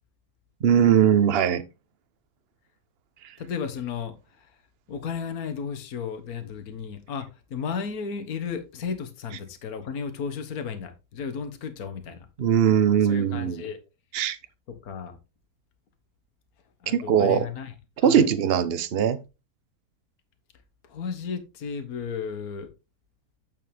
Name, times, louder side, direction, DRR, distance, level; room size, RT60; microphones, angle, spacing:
voice 1, 0.6-1.6 12.4-13.6 14.1-14.4 16.9-17.5 18.0-19.2, right 8 dB, 45° right, 0.9 m, -20 dB
voice 2, 3.4-4.5 4.9-12.3 13.1-13.8 14.7-15.2 16.8-17.7 18.0-18.3 20.9-22.7, left 6 dB, 60° left, 1.7 m, -34 dB
8.8 x 7.0 x 3.5 m
omnidirectional pair, 1.8 m